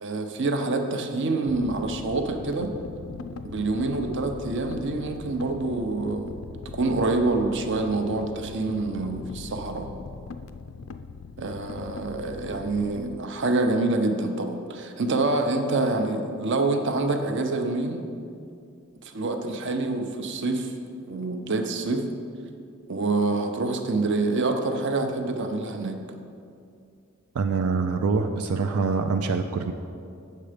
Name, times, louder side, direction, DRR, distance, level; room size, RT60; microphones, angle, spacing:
voice 1, 0.0-2.7 3.4-6.4 6.7-9.9 11.4-18.1 19.0-20.7 21.1-22.1 22.9-26.0, right 2 dB, 55° right, 5 dB, 0.7 m, -26 dB
sound 1, 1.5-13.2, left 4 dB, 70° left, 0.4 m, -40 dB
voice 2, 27.3-29.7, right 4 dB, 90° right, 6 dB, 0.4 m, -25 dB
8.4 x 6.7 x 5.0 m, 2.4 s
head